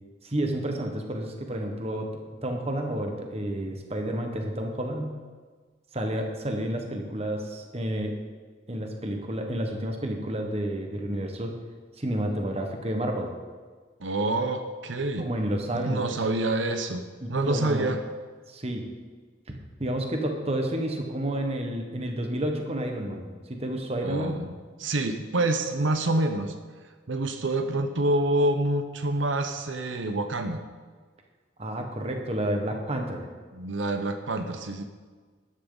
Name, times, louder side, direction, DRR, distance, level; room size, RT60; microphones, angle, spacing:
voice 1, 0.2-2.1 2.4-5.2 5.9-8.2 8.7-11.6 12.0-13.3 15.2-16.1 17.2-17.9 18.5-18.9 19.8-24.3 31.6-33.2, right 1 dB, 35° right, 3 dB, 1.4 m, -30 dB
voice 2, 14.0-15.3 15.7-17.0 17.3-18.0 24.0-24.5 24.8-26.5 27.1-30.6 33.5-34.8, right 2 dB, 90° right, 7 dB, 0.9 m, -27 dB
13.0 x 10.5 x 4.0 m, 1.5 s
head